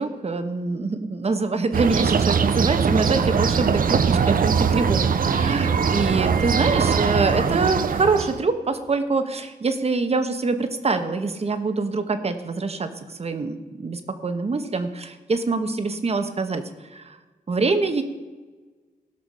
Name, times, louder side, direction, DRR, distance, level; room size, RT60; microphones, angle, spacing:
voice 1, 0.0-5.0 5.3-12.9 13.2-16.6 16.9-17.2 17.5-18.0, right 3 dB, 40° right, 8 dB, 1.1 m, -24 dB
sound 1, 1.7-8.4, right 6 dB, 65° right, 0.7 m, -21 dB
17.5 x 6.1 x 4.8 m, 1.3 s
wide cardioid pair, 100°, 16 cm